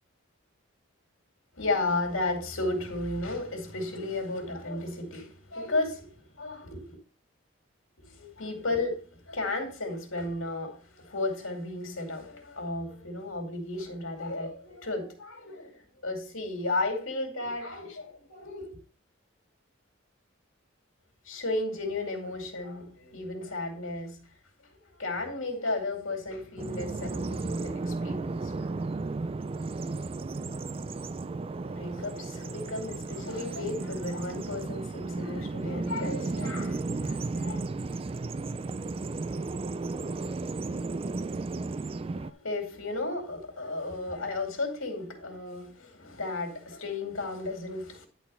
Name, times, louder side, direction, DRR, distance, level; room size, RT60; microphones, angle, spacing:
voice 1, 1.5-7.0 8.0-18.8 21.2-24.3 24.7-29.1 31.7-37.6 42.1-48.1, left 2 dB, 75° left, 2.5 m, -34 dB
Bird vocalization bird call bird song, 26.6-42.3, right 3 dB, 25° right, 0.3 m, -34 dB
10.5 x 4.2 x 5.5 m
head